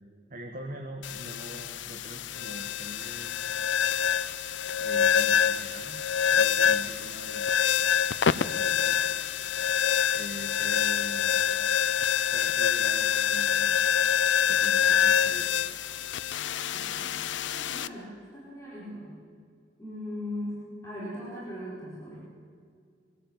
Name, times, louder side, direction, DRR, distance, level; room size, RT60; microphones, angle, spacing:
voice 1, 0.3-3.7 4.7-7.5 8.3-9.0 10.1-11.5 12.3-13.9 14.2-15.6, equal, 45° right, 3 dB, 1.6 m, -43 dB
sound 1, 1.0-17.9, left 8 dB, 80° left, 0.6 m, -26 dB
voice 2, 16.6-17.1 17.4-19.1 19.8-22.2, left 1 dB, 15° left, -8 dB, 5.0 m, -39 dB
23.0 x 14.5 x 8.1 m, 2.2 s
head